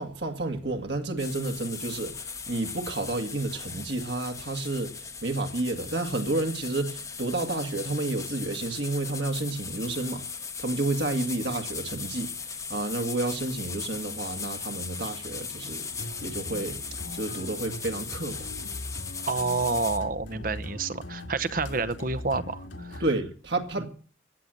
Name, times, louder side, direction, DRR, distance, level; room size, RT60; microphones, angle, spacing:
voice 1, 0.0-10.2 10.6-12.3 12.7-15.9 16.2-16.8 17.1-18.5 23.0-23.9, right 2 dB, 60° right, 1.9 m, -30 dB
sound 1, 1.2-20.0, left 6 dB, 15° left, 0.9 m, -38 dB
sound 2, 15.9-23.1, left 1 dB, 70° left, 2.1 m, -40 dB
voice 2, 19.3-23.0 23.8-23.9, right 3 dB, 45° right, 0.9 m, -29 dB
15.5 x 9.6 x 7.7 m
head